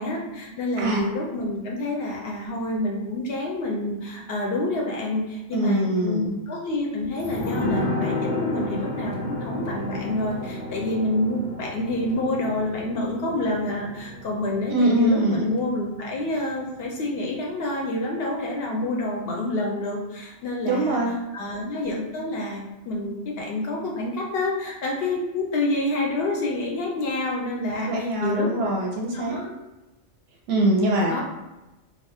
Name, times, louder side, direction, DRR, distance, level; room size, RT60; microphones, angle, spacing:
voice 1, 0.0-28.5 29.1-29.5 31.1-31.2, left 2 dB, 65° left, -1 dB, 0.7 m, -28 dB
voice 2, 5.5-6.3 14.7-15.5 20.7-21.2 27.9-29.4 30.5-31.1, right 1 dB, 65° right, -1 dB, 0.7 m, -23 dB
sound 1, 7.2-16.5 16.8-16.9, left 1 dB, 90° left, 0.9 m, -32 dB
2.6 x 2.3 x 3.3 m, 1.0 s
omnidirectional pair, 1.3 m